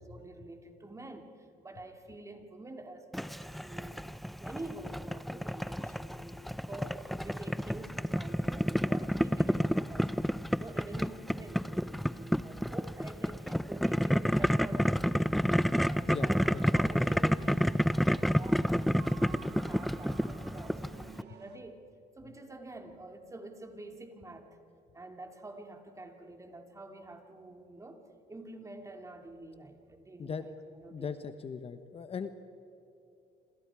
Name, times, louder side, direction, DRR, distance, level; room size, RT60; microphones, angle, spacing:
voice 1, 0.0-4.0 4.3-15.4 15.8-16.4 16.7-18.7 19.0-21.8 22.2-24.6 24.9-28.0 28.3-30.5 30.8-31.1, right 2 dB, 20° right, 4 dB, 2.6 m, -47 dB
Boiling, 3.1-21.2, equal, ahead, 0.5 m, -30 dB
voice 2, 16.1-16.8 30.2-30.5 30.9-32.3, left 6 dB, 35° left, 10 dB, 1.1 m, -39 dB
sound 1, 16.1-21.6, right 8 dB, 80° right, 1.8 m, -52 dB
27.0 x 27.0 x 4.9 m, 2.7 s
cardioid pair, 110°, 17 cm